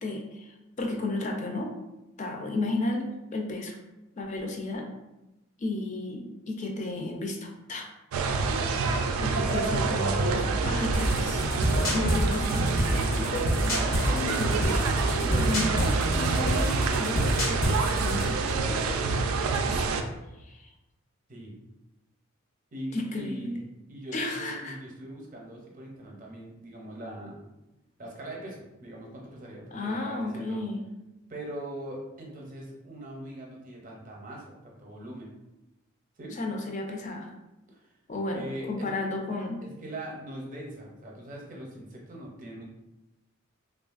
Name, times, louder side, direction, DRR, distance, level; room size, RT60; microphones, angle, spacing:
voice 1, 0.0-1.7 2.2-3.8 4.2-4.9 5.6-7.9 9.2-18.9 19.3-19.9 20.4-20.7 22.9-23.6 24.1-24.8 29.7-30.8 36.3-37.3 38.1-39.6, left 2 dB, 35° left, 2 dB, 0.4 m, -33 dB
sound 1, 8.1-20.0, right 4 dB, 85° right, 0.3 m, -27 dB
sound 2, 10.9-18.3, equal, 75° left, 0.8 m, -29 dB
voice 2, 22.7-23.6 23.9-27.4 28.0-30.6 31.3-35.3 36.2-36.4 37.7-37.9 38.3-39.1 39.6-42.6, right 1 dB, 40° right, -2 dB, 0.6 m, -41 dB
3.1 x 2.3 x 2.4 m, 0.97 s
head